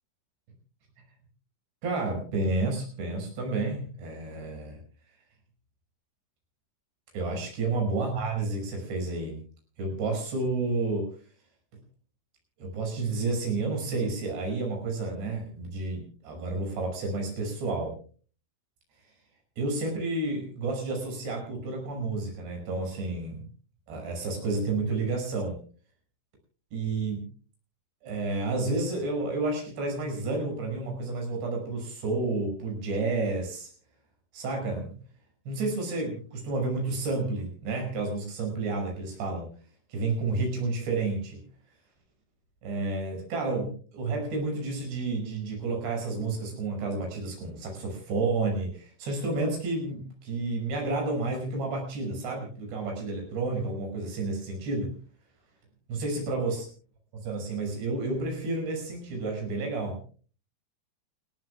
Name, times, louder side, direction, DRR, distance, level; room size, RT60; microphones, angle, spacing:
voice 1, 1.8-4.8 7.1-9.4 9.8-11.1 12.6-18.0 19.6-23.5 23.9-25.6 26.7-27.2 28.0-33.7 34.3-35.0 35.5-39.5 39.9-41.4 42.6-54.9 55.9-56.7 57.2-60.0, right 3 dB, 80° right, 2 dB, 8.0 m, -30 dB
29.0 x 16.0 x 2.3 m, 0.41 s
omnidirectional pair, 4.8 m